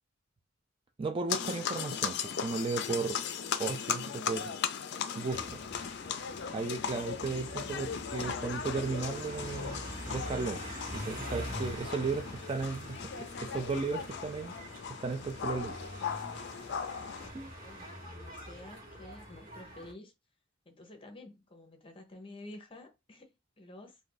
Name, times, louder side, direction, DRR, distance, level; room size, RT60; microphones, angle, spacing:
voice 1, 1.0-3.2 3.6-4.5 5.1-5.6 6.5-9.8 10.1-10.6 10.9-14.5 15.0-15.8 17.3-17.5, right 4 dB, 25° right, 0.3 m, -35 dB
sound 1, 1.3-17.3, left 7 dB, 55° left, 0.4 m, -37 dB
sound 2, 5.3-19.9, equal, 45° right, 1.5 m, -44 dB
voice 2, 17.6-20.1 20.7-24.0, left 1 dB, 25° left, 0.7 m, -50 dB
2.6 x 2.5 x 3.8 m
head